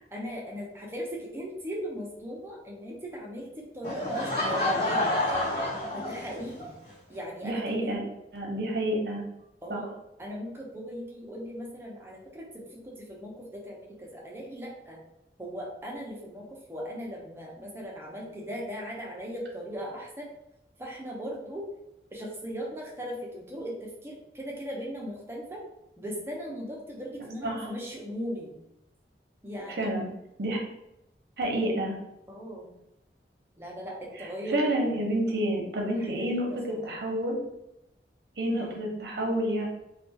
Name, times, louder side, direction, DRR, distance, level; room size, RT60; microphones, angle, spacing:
voice 1, 0.1-5.1 5.9-6.7 7.1-8.1 9.6-9.9 10.2-15.0 15.4-20.3 20.8-21.6 22.1-25.6 26.0-28.6 29.4-30.0 32.3-32.8 33.6-35.0 36.0-36.1 36.7-36.9 38.6-38.8, equal, 15° right, -3 dB, 0.4 m, -38 dB
Laughter / Crowd, 3.8-6.7, left 1 dB, 65° left, 1.1 m, -28 dB
voice 2, 7.4-8.0 8.3-9.2 9.7-9.8 27.4-27.7 29.8-30.1 30.4-30.6 31.4-32.0 34.2-37.4 38.4-39.7, right 1 dB, 65° right, -1 dB, 0.6 m, -29 dB
2.2 x 2.2 x 2.6 m, 0.87 s
head